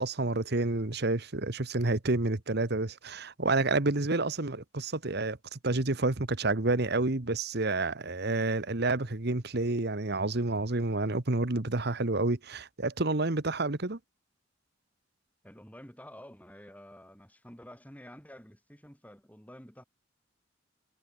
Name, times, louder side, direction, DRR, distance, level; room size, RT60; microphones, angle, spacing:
voice 1, 0.0-14.0, right 2 dB, 55° right, 1.4 m, -29 dB
voice 2, 15.4-19.8, equal, 10° left, 7.0 m, -50 dB
head